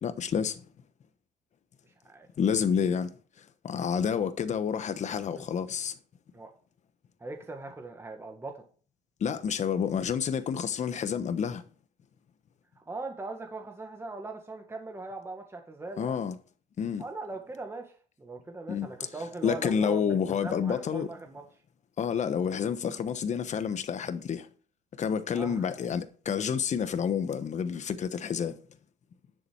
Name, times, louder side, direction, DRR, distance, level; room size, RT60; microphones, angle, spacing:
voice 1, 0.0-0.6 2.4-6.0 9.2-11.6 16.0-16.3 16.8-17.0 18.7-18.9 19.4-21.1 22.0-24.5 25.0-28.6, left 7 dB, 45° left, 1.1 m, -29 dB
voice 2, 7.2-8.6 12.9-16.3 17.0-21.4 25.3-25.7, right 3 dB, 15° right, 1.8 m, -40 dB
10.5 x 6.9 x 4.6 m
cardioid pair, 110°, 17 cm